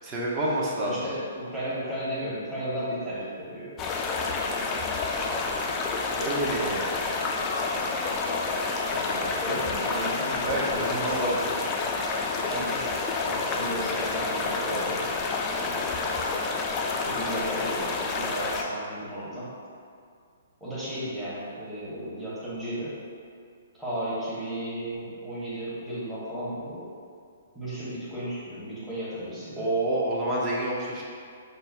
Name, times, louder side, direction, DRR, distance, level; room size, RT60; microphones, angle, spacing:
voice 1, 0.0-1.0 6.2-6.9 10.4-11.3 29.6-31.0, right 1 dB, 30° right, -4 dB, 0.7 m, -28 dB
voice 2, 0.8-3.8 8.0-8.1 8.9-11.4 12.4-15.1 15.5-16.2 17.0-19.5 20.6-23.0 23.8-26.9 27.5-29.7, equal, 5° right, -11 dB, 1.0 m, -34 dB
sound 1, 3.8-18.6, left 3 dB, 25° left, 0.3 m, -29 dB
sound 2, 5.0-12.3, left 2 dB, 75° left, 0.6 m, -41 dB
5.3 x 2.0 x 2.4 m, 2.2 s
hypercardioid pair, 125°, 0 cm